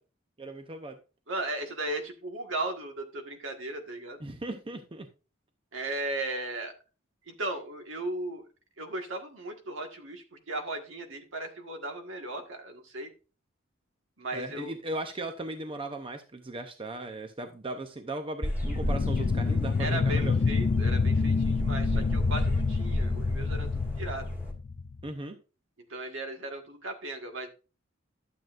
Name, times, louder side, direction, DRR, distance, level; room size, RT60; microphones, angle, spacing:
voice 1, 0.4-1.0 4.2-5.1 14.3-20.4 21.9-22.1 25.0-25.4, right 2 dB, 25° right, 6 dB, 0.6 m, -37 dB
voice 2, 1.3-4.2 5.7-6.7 7.3-8.5 8.8-13.1 14.2-14.7 19.8-24.2 25.9-27.5, right 2 dB, 70° right, 4 dB, 1.7 m, -36 dB
sound 1, 18.4-24.5, equal, 10° right, 1.9 m, -33 dB
sound 2, 18.6-25.1, left 4 dB, 40° left, 0.3 m, -27 dB
11.5 x 7.5 x 2.5 m, 0.33 s
head